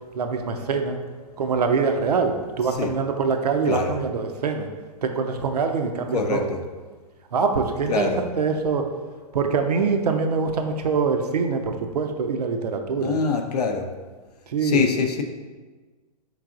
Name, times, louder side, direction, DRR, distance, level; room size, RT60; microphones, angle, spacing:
voice 1, 0.1-1.0 1.4-4.7 5.0-6.5 7.3-8.9 9.3-13.1 14.5-14.9, right 5 dB, 85° right, 5 dB, 0.5 m, -24 dB
voice 2, 3.7-4.0 6.1-6.6 7.9-8.2 13.0-13.9 14.6-15.2, left 5 dB, 85° left, 4 dB, 0.5 m, -24 dB
4.7 x 3.8 x 2.4 m, 1.4 s
hypercardioid pair, 125°, 20 cm